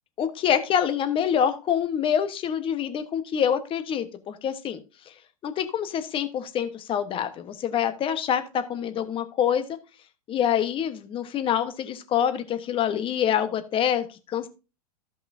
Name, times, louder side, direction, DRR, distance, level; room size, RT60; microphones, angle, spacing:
voice 1, 0.2-4.8 5.1-5.2 5.4-9.7 10.3-14.5, left 9 dB, 25° left, 10 dB, 1.1 m, -26 dB
14.5 x 5.5 x 2.6 m, 0.30 s
hypercardioid pair, 120°, 21 cm